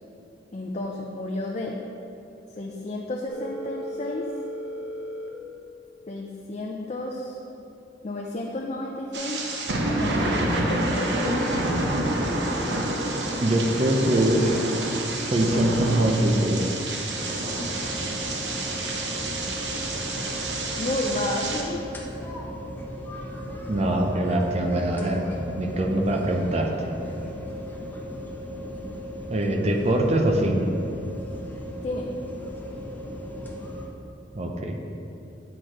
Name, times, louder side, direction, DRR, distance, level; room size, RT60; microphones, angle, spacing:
voice 1, 0.5-1.8 2.6-4.3 6.1-7.4 8.0-9.4 9.9-11.2 20.8-21.8 31.8-32.1, left 2 dB, 40° left, -1 dB, 0.5 m, -31 dB
Telephone, 3.3-5.3, equal, 70° left, 1.1 m, -35 dB
sound 1, 9.1-21.6, right 1 dB, 75° right, 0.9 m, -28 dB
voice 2, 13.4-14.6 15.2-16.7 23.7-25.2 25.5-26.7 29.3-30.7 34.3-34.8, right 1 dB, 40° right, 2 dB, 0.6 m, -23 dB
sound 2, 17.1-33.9, equal, 10° left, 0.9 m, -36 dB
7.8 x 4.4 x 4.9 m, 2.8 s
head